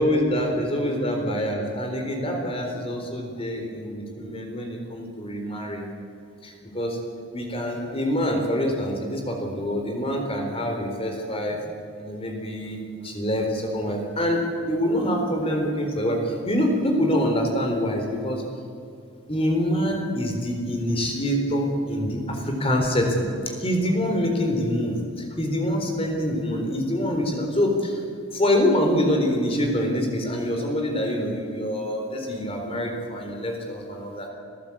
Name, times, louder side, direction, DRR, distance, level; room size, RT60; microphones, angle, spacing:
voice 1, 0.0-5.9 6.4-7.0 7.3-11.6 12.0-18.4 19.3-23.3 23.6-28.0 28.3-34.3, equal, 25° left, 3 dB, 3.9 m, -25 dB
27.0 x 14.5 x 8.6 m, 2.4 s
head